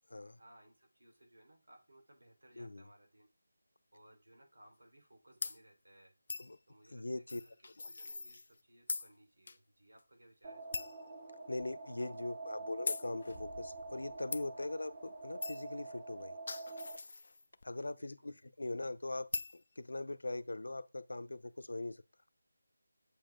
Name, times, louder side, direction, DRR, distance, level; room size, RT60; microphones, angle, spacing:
voice 1, 0.4-3.3 3.9-6.1 6.7-10.9 18.0-18.4, right 1 dB, 90° right, 4.3 m, -63 dB
sound 1, 5.4-5.6 6.3-6.5 7.3-8.6 8.9-9.1 9.5-9.6 10.0-10.1 10.7-11.0 11.6-11.7 12.9-13.1 14.3-14.4 15.4-15.7 16.2-17.6 19.3-19.6, left 3 dB, 35° left, 0.6 m, -40 dB
voice 2, 6.9-7.4 11.5-16.4 17.6-22.0, left 2 dB, 70° left, 0.8 m, -41 dB
sound 2, 10.4-17.0, right 3 dB, 20° right, 0.7 m, -47 dB
sound 3, 13.1-15.3, left 2 dB, 50° left, 1.8 m, -57 dB
8.4 x 7.2 x 3.8 m
figure-of-eight pair, 180°, 0 cm